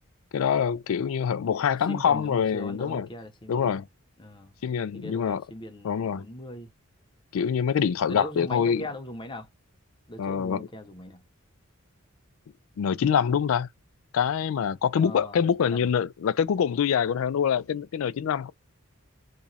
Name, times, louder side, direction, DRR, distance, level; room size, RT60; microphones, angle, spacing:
voice 1, 0.3-3.1 3.5-3.9 4.6-5.4 5.8-6.2 7.3-8.8 10.2-10.7 12.8-13.7 14.1-18.5, left 7 dB, 70° left, 0.3 m, -25 dB
voice 2, 1.9-3.7 4.2-4.5 4.9-6.7 8.1-9.5 10.1-11.2 15.0-15.9, left 1 dB, 25° left, 0.8 m, -39 dB
3.0 x 2.4 x 4.0 m
head